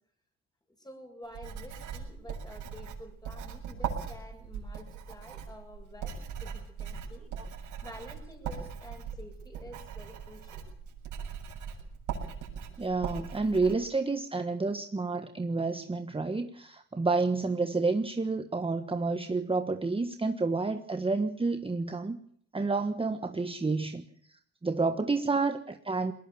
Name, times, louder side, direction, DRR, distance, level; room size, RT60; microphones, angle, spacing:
voice 1, 0.8-7.3 7.6-10.7, equal, 15° left, 4 dB, 8.0 m, -49 dB
Writing, 1.3-13.7, right 7 dB, 80° right, 7.4 m, -40 dB
voice 2, 12.8-22.2 22.5-24.0 24.3-26.1, right 3 dB, 20° right, 8 dB, 1.4 m, -30 dB
21.5 x 19.0 x 7.2 m, 0.63 s
cardioid pair, 90°, 30 cm